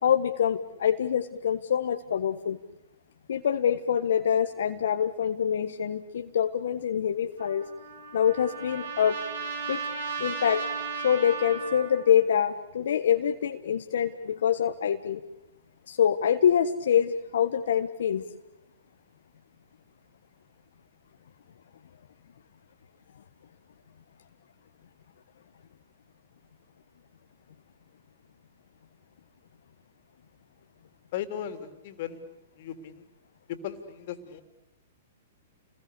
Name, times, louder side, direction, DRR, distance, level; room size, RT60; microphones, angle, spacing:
voice 1, 0.0-2.6 3.3-7.6 8.1-9.2 9.7-9.8 10.2-10.6 11.0-15.2 15.9-18.2, left 8 dB, 70° left, 6 dB, 1.4 m, -25 dB
Trumpet, 7.4-12.2, right 5 dB, 70° right, 7.2 m, -35 dB
voice 2, 31.1-32.2 32.6-33.0 33.5-34.4, left 9 dB, 55° left, 9 dB, 3.4 m, -36 dB
29.5 x 21.0 x 8.4 m, 0.95 s
hypercardioid pair, 120°, 0 cm